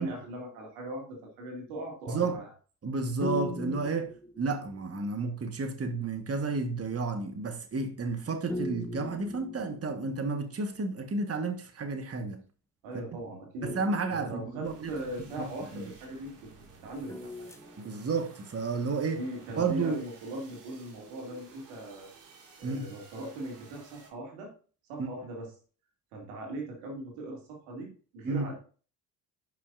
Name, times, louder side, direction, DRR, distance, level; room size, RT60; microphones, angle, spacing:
voice 1, 0.0-2.5 12.8-13.7 14.1-16.5 16.8-17.5 19.1-22.1 22.6-24.5 24.9-25.5 26.1-28.5, right 1 dB, 90° right, 2.4 m, -40 dB
voice 2, 2.1-2.4 2.8-12.4 13.6-14.9 15.4-15.9 17.8-19.2 19.6-20.0 22.6-22.9 25.0-25.1 28.2-28.4, right 4 dB, 35° right, 1.4 m, -31 dB
sound 1, 3.2-4.9 8.5-10.3 13.6-15.2 17.1-18.3, left 2 dB, 5° left, 0.6 m, -40 dB
sound 2, 14.6-24.1, right 4 dB, 70° right, 2.7 m, -54 dB
10.5 x 5.8 x 2.5 m
hypercardioid pair, 55°, 44 cm